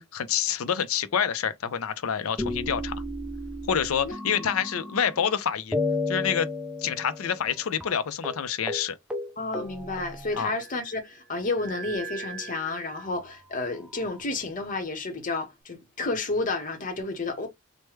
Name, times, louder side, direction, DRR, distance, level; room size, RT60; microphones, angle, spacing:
voice 1, 0.0-2.9 3.7-5.8 6.1-6.5 6.8-9.0 10.3-10.5, left 8 dB, 90° left, 0.5 m, -27 dB
sound 1, 2.4-5.3 5.7-7.5 7.8-7.9 8.2-8.4 8.7-8.8 9.1-10.8 11.6-13.2 13.9-14.8, left 2 dB, 5° right, 0.5 m, -34 dB
voice 2, 9.4-17.5, left 3 dB, 40° left, 0.9 m, -31 dB
3.2 x 2.1 x 3.1 m
head